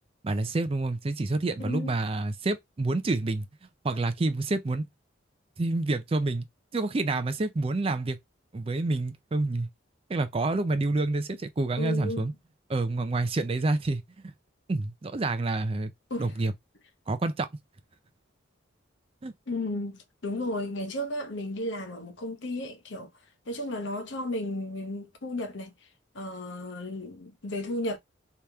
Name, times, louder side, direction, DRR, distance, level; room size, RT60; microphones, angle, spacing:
voice 1, 0.2-3.5 3.8-4.8 5.6-6.5 6.7-8.2 8.5-9.7 10.1-12.3 12.7-14.0 14.7-15.9 16.2-16.5 17.1-17.5 19.2-19.3, right 2 dB, 30° right, 0.4 m, -28 dB
voice 2, 1.6-2.0 11.8-12.3 16.1-16.3 19.5-23.1 23.5-25.7 26.1-28.0, left 1 dB, 65° left, 0.9 m, -34 dB
3.3 x 2.9 x 3.4 m
head